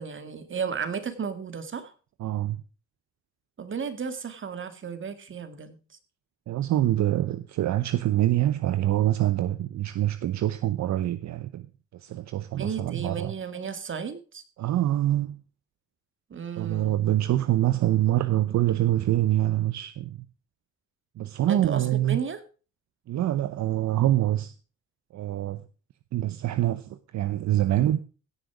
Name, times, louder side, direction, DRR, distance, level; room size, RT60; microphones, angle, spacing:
voice 1, 0.0-1.9 3.6-5.8 12.5-14.4 16.3-17.1 21.5-22.4, right 6 dB, 40° right, 2.0 m, -34 dB
voice 2, 2.2-2.6 6.5-11.7 11.9-13.3 14.6-15.4 16.6-20.2 21.2-22.2 23.1-24.5 25.1-25.6 26.1-28.0, right 13 dB, 65° right, 0.8 m, -25 dB
17.0 x 6.5 x 4.8 m
cardioid pair, 90°, 30 cm